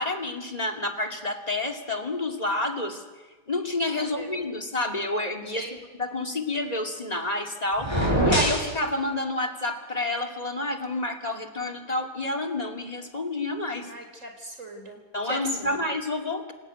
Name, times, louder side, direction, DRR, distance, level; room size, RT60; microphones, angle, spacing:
voice 1, 0.0-3.0 3.5-13.9 15.1-16.5, left 2 dB, 25° left, 3 dB, 2.6 m, -29 dB
voice 2, 3.9-4.4 5.5-5.8 13.9-15.0 15.2-15.8, equal, 45° right, 4 dB, 4.6 m, -38 dB
sound 1, 7.8-8.7, equal, 15° right, 6.1 m, -23 dB
27.0 x 17.5 x 9.4 m, 1.3 s
omnidirectional pair, 1.8 m